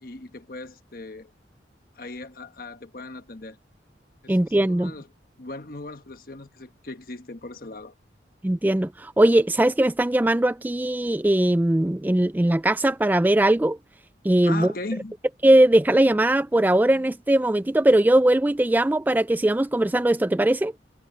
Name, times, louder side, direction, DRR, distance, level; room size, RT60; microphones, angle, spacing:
voice 1, 0.0-1.3 2.0-3.6 4.2-5.1 5.4-7.9 14.4-15.1, left 2 dB, 50° left, 1.3 m, -38 dB
voice 2, 4.3-4.9 8.4-13.8 14.2-14.7 15.4-20.7, right 1 dB, 10° right, 0.3 m, -20 dB
head